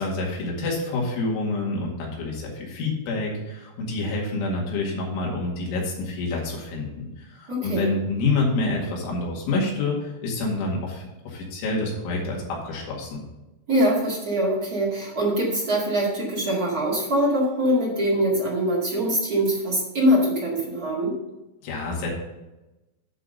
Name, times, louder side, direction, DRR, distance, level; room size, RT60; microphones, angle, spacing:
voice 1, 0.0-13.2 21.6-22.1, left 3 dB, 90° left, -2 dB, 4.5 m, -27 dB
voice 2, 7.5-7.8 13.7-21.2, equal, 55° right, -5 dB, 0.9 m, -23 dB
11.0 x 4.1 x 6.4 m, 1.0 s
omnidirectional pair, 5.3 m